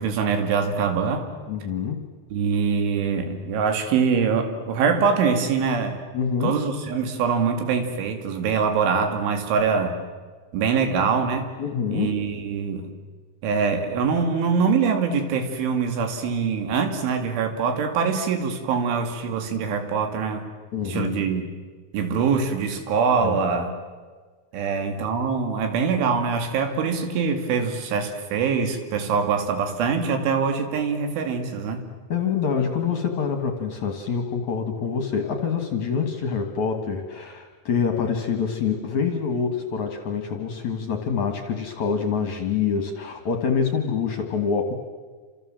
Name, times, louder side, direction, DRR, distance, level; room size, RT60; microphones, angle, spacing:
voice 1, 0.0-1.3 2.3-6.0 6.4-10.0 10.5-11.5 11.9-12.9 13.4-20.5 20.9-21.4 21.9-23.7 24.5-31.8, right 5 dB, 85° right, 6 dB, 4.8 m, -24 dB
voice 2, 1.5-2.0 6.1-6.6 11.6-12.2 20.7-21.3 23.2-23.4 24.6-24.8 32.1-44.8, left 6 dB, 55° left, 5 dB, 2.3 m, -26 dB
29.0 x 26.5 x 7.5 m, 1.5 s
omnidirectional pair, 5.3 m